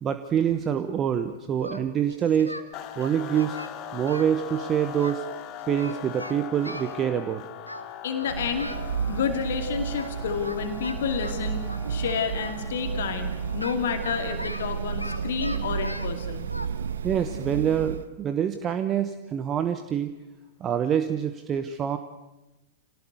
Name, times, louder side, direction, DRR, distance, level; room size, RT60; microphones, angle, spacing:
voice 1, 0.0-2.6 3.0-3.6 3.9-5.2 5.7-7.4 17.0-20.1 20.6-22.0, right 9 dB, 25° right, 10 dB, 1.1 m, -26 dB
Singing, 1.6-2.7 3.0-5.1 5.6-7.0 7.7-7.9 8.1-8.9 9.9-10.1 10.4-12.6 13.6-16.1 16.5-16.7, equal, 90° left, 1.5 m, -39 dB
sound 1, 2.7-16.1, left 10 dB, 35° left, 1.8 m, -41 dB
voice 2, 8.0-8.7 9.1-11.6 11.9-16.5, left 6 dB, 60° left, 6 dB, 2.4 m, -30 dB
sound 2, 8.2-18.1, right 7 dB, 65° right, 0.9 m, -32 dB
25.5 x 18.5 x 8.2 m, 1.0 s
figure-of-eight pair, 95°, 0 cm